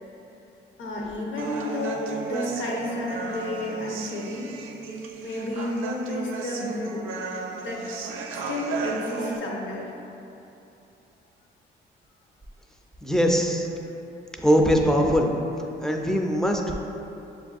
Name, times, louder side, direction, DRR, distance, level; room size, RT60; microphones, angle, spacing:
voice 1, 0.8-4.5 5.2-7.1 7.6-7.8 8.3-9.9, left 1 dB, 75° left, -2 dB, 0.8 m, -31 dB
Human voice, 1.4-9.4, right 4 dB, 85° right, 0.4 m, -34 dB
voice 2, 13.0-13.7 14.4-15.3 15.8-16.7, equal, ahead, 1 dB, 0.4 m, -21 dB
6.9 x 2.6 x 2.4 m, 2.9 s
cardioid pair, 90°, 20 cm